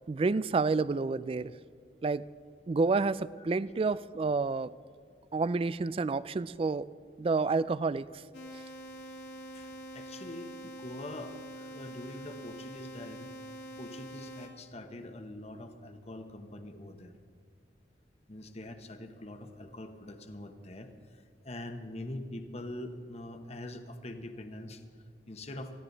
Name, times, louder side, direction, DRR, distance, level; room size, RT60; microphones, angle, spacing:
voice 1, 0.1-1.5 2.0-2.2 2.7-4.7 5.3-6.9 7.2-8.1, right 4 dB, 30° right, 18 dB, 0.3 m, -29 dB
sound 1, 8.3-14.5, right 1 dB, 70° left, 2.3 m, -45 dB
voice 2, 9.5-13.3 13.8-17.1 18.3-20.9 21.4-24.8 25.3-25.7, left 1 dB, 35° left, 7 dB, 1.1 m, -44 dB
20.0 x 15.0 x 4.0 m, 2.1 s
head